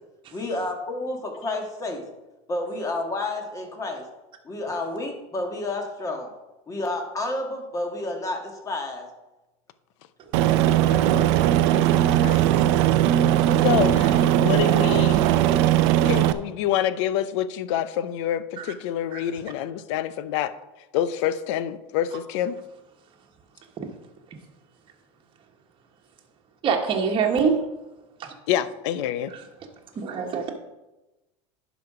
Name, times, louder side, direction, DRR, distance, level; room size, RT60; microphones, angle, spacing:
voice 1, 0.3-2.0 2.5-4.0 4.4-6.3 6.7-9.1, left 2 dB, 20° left, 3 dB, 1.7 m, -30 dB
Aircraft, 10.3-16.3, right 12 dB, 70° right, 0.6 m, -19 dB
voice 2, 10.9-11.4 12.0-12.4 13.6-15.3 16.0-20.5 20.9-22.6 28.5-29.3, left 11 dB, 70° left, 15 dB, 0.6 m, -27 dB
voice 3, 26.6-27.5 28.2-28.3 29.3-29.4 29.9-30.5, right 6 dB, 35° right, 1 dB, 1.3 m, -24 dB
11.0 x 5.1 x 4.9 m, 1.0 s
supercardioid pair, 125°, 15 cm